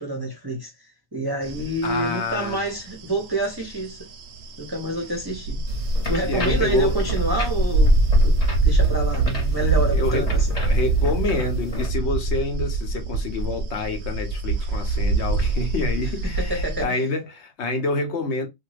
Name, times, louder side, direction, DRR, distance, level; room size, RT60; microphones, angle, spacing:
voice 1, 0.0-4.1 4.6-5.6 6.1-8.4 8.6-10.5 16.2-17.0, right 1 dB, 25° right, 0.6 m, -28 dB
sound 1, 1.4-16.8, right 2 dB, 65° right, 0.8 m, -24 dB
voice 2, 1.8-2.6 6.2-7.0 9.9-10.3 10.6-18.5, left 2 dB, 65° left, 1.0 m, -27 dB
sound 2, 5.7-11.9, left 2 dB, 30° left, 1.1 m, -34 dB
2.6 x 2.5 x 3.1 m
omnidirectional pair, 1.3 m